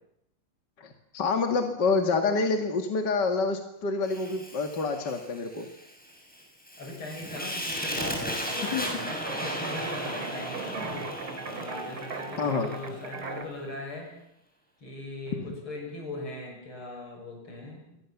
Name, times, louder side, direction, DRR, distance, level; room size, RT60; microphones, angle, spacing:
voice 1, 0.8-5.7 8.7-9.2 12.4-12.7, left 4 dB, 55° left, 4 dB, 2.5 m, -27 dB
Fire, 4.0-13.3, equal, 5° left, 7.1 m, -36 dB
voice 2, 6.8-8.9 9.3-11.1 11.4-14.2 14.8-18.0, left 2 dB, 75° left, 2 dB, 7.3 m, -39 dB
sound 1, 8.5-13.4, right 4 dB, 80° right, 3.8 m, -38 dB
27.5 x 24.0 x 7.2 m, 0.79 s
omnidirectional pair, 2.4 m